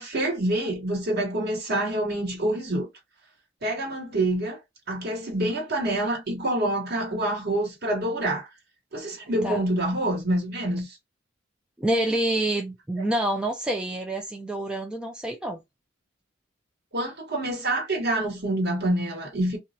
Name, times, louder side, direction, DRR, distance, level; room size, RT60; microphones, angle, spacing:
voice 1, 0.0-2.9 3.6-4.6 4.9-8.5 8.9-11.0 13.0-13.1 16.9-19.6, right 1 dB, 55° right, 1.1 m, -27 dB
voice 2, 11.8-15.6, right 1 dB, 5° right, 0.3 m, -27 dB
2.3 x 2.0 x 2.7 m
head